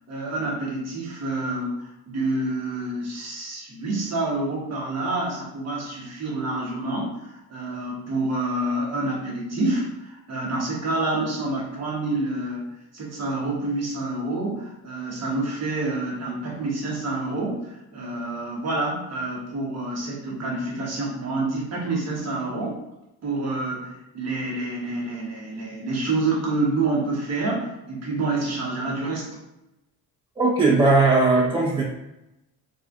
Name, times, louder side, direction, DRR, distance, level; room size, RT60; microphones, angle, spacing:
voice 1, 0.1-22.8 23.2-29.3, right 2 dB, 45° right, -3 dB, 1.2 m, -28 dB
voice 2, 30.3-31.8, right 3 dB, 15° right, -7 dB, 1.0 m, -18 dB
3.7 x 3.1 x 2.5 m, 0.91 s
cardioid pair, 120°, 36 cm